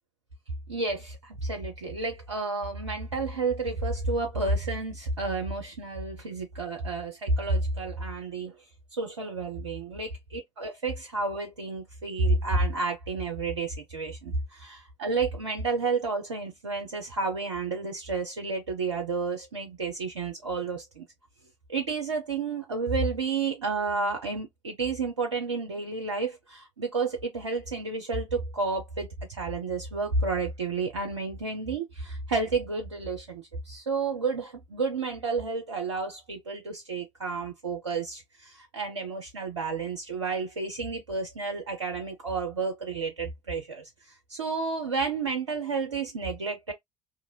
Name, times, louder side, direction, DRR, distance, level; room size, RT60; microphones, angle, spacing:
voice 1, 0.7-8.5 9.0-21.1 21.7-43.8 44.3-46.7, right 3 dB, 85° right, 0.4 m, -31 dB
2.5 x 2.4 x 2.9 m
figure-of-eight pair, 50°, 15 cm